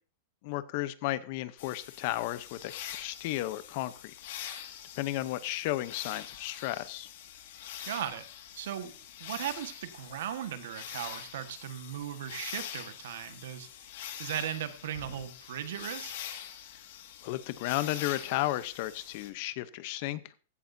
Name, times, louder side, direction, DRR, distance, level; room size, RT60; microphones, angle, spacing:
voice 1, 0.4-3.9 4.5-4.7 5.0-7.1 17.2-20.2, left 16 dB, 45° left, 16 dB, 0.7 m, -33 dB
sound 1, 1.6-19.3, left 10 dB, 60° left, 1.9 m, -45 dB
voice 2, 7.8-8.3 8.5-8.9 9.2-13.7 14.2-16.1, right 10 dB, 70° right, 10 dB, 1.5 m, -37 dB
15.5 x 12.0 x 2.7 m, 0.38 s
supercardioid pair, 165°, 0 cm